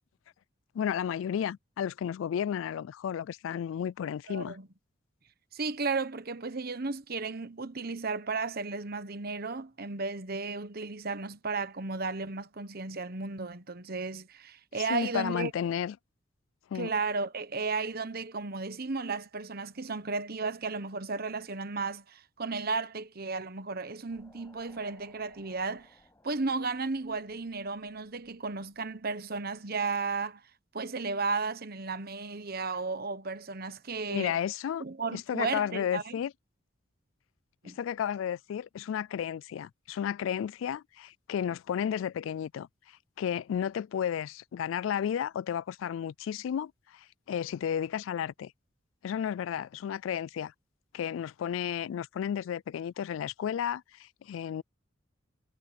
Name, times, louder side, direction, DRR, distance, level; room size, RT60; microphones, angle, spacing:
voice 1, 0.7-4.6 14.9-16.0 16.7-16.9 34.1-34.8 35.1-36.3 37.6-42.7 43.2-48.5 49.0-50.5 50.9-54.6, left 8 dB, 80° left, 0.3 m, -33 dB
voice 2, 4.3-4.7 5.5-15.5 16.7-25.9 26.2-30.4 30.7-34.4 34.8-36.1 37.6-37.8, right 4 dB, 50° right, 1.2 m, -34 dB
sound 1, 24.1-29.3, left 2 dB, 15° left, 7.5 m, -63 dB
head